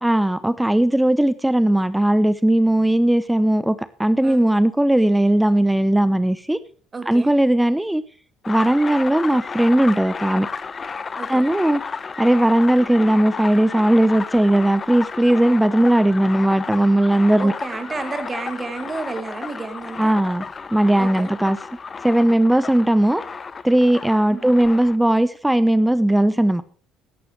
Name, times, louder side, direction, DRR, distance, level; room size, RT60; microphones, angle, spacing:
voice 1, 0.0-6.6 7.1-8.0 8.5-10.5 11.3-11.8 12.2-17.5 20.0-20.4 20.7-21.6 22.0-23.2 23.6-26.6, right 1 dB, 5° right, 16 dB, 0.7 m, -18 dB
voice 2, 6.9-7.3 11.2-11.5 17.4-20.1 21.0-21.3 24.3-24.5, right 3 dB, 25° right, 9 dB, 2.4 m, -31 dB
sound 1, 8.4-25.0, left 5 dB, 30° left, 0.9 m, -33 dB
15.5 x 12.0 x 3.2 m, 0.42 s
figure-of-eight pair, 55°, 0 cm